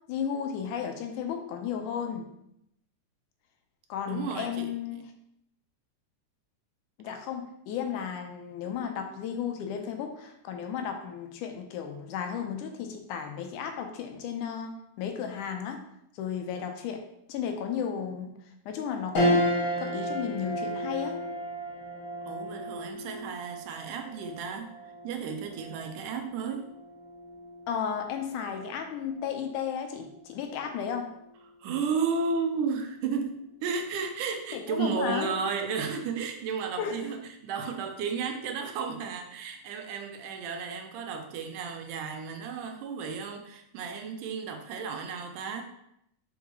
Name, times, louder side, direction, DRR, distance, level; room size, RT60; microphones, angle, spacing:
voice 1, 0.1-2.3 3.9-5.0 7.0-14.7 15.0-15.8 16.2-17.0 17.3-18.3 18.7-21.2 27.7-31.1 34.5-35.3 36.8-37.0, left 7 dB, 80° left, 5 dB, 2.1 m, -34 dB
voice 2, 4.1-5.0 22.3-26.7 31.6-45.6, right 5 dB, 80° right, 5 dB, 2.2 m, -33 dB
sound 1, 19.1-28.7 29.2-29.3 30.6-31.1, equal, 65° left, 1.3 m, -33 dB
5.9 x 5.3 x 3.1 m, 0.77 s
omnidirectional pair, 3.6 m